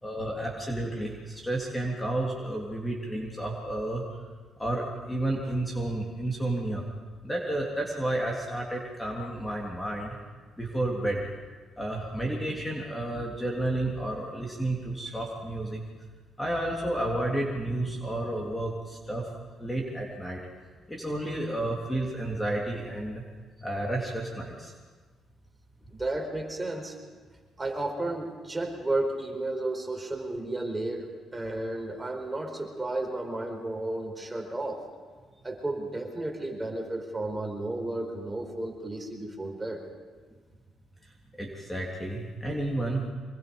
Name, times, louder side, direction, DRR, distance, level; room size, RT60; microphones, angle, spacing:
voice 1, 0.0-4.0 4.6-6.8 7.2-10.2 10.6-11.2 11.8-15.8 16.4-19.3 19.6-20.4 20.9-23.2 23.6-24.7 41.4-43.1, right 1 dB, 10° left, -1 dB, 3.3 m, -31 dB
voice 2, 25.9-27.0 27.6-34.8 35.4-39.8, right 2 dB, 15° right, 2 dB, 4.5 m, -33 dB
25.5 x 22.0 x 5.4 m, 1.4 s
cardioid pair, 90°, 0 cm